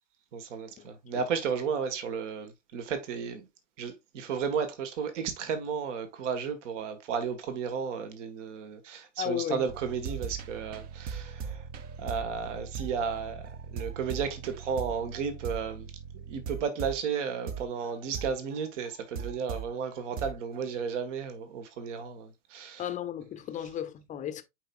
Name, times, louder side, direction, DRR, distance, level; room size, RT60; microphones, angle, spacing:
voice 1, 0.3-3.5 3.8-11.6 12.0-22.9, right 6 dB, 55° right, 1.6 m, -33 dB
voice 2, 9.2-9.6 22.8-24.4, left 11 dB, 20° left, 0.7 m, -34 dB
sound 1, 9.7-19.7 20.2-20.6, right 7 dB, 20° right, 0.5 m, -39 dB
9.2 x 4.6 x 2.4 m
hypercardioid pair, 110°, 42 cm